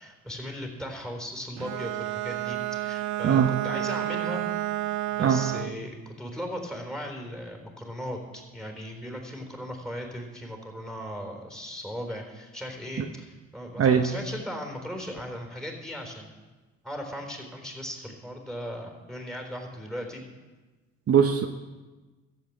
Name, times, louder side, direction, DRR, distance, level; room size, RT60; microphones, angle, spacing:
voice 1, 0.0-4.4 5.1-16.3 16.8-20.2, equal, ahead, 2 dB, 3.9 m, -37 dB
Bowed string instrument, 1.6-5.8, right 14 dB, 75° right, 0.5 m, -31 dB
voice 2, 21.1-21.5, right 8 dB, 50° right, 5 dB, 0.9 m, -20 dB
14.0 x 7.9 x 7.6 m, 1.2 s
cardioid pair, 90°, 30 cm